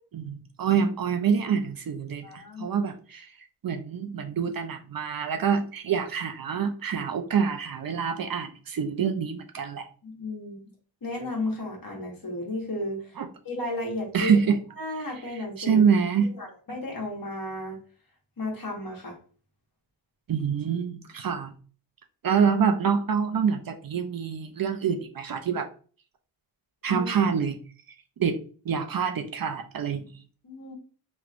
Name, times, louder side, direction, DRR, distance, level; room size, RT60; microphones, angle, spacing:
voice 1, 0.1-3.3 3.6-9.9 13.2-13.3 14.1-14.6 15.6-16.3 20.3-21.5 22.2-25.7 26.8-27.6 28.2-28.4 28.7-30.1, right 6 dB, 50° right, 7 dB, 0.5 m, -26 dB
voice 2, 2.2-2.8 10.0-10.6 11.0-13.2 13.4-15.8 16.2-17.8 18.4-19.2 26.9-27.1 30.4-30.7, left 1 dB, 45° left, 0 dB, 1.5 m, -34 dB
3.1 x 3.1 x 2.4 m, 0.40 s
cardioid pair, 50°, 47 cm